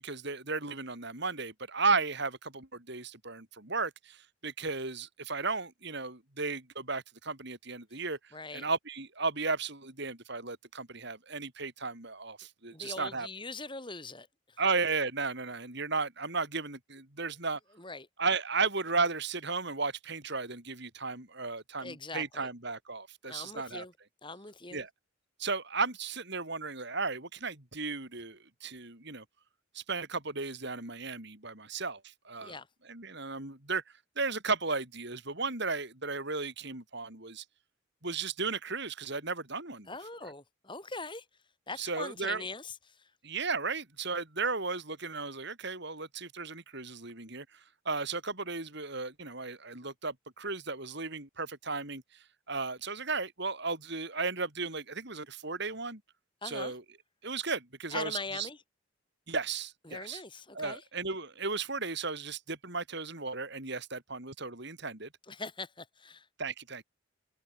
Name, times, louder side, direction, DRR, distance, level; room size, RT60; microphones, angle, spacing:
voice 1, 0.0-8.2 8.5-13.3 14.6-17.6 18.2-23.8 24.7-24.9 25.4-29.2 29.7-32.6 32.9-33.8 34.2-37.4 38.0-39.9 41.8-42.4 43.2-47.6 47.9-52.0 52.5-56.0 56.4-56.8 57.2-58.5 59.3-60.2 60.5-65.1 66.4-66.8, right 4 dB, 55° right, 4.2 m, -35 dB
voice 2, 8.3-8.7 12.7-14.6 17.8-18.1 21.8-22.5 23.2-23.9 24.2-24.8 32.4-32.7 39.9-41.3 41.7-43.1 56.4-56.7 57.9-58.6 59.8-60.8 65.3-66.3, left 3 dB, 20° left, 8.0 m, -42 dB
head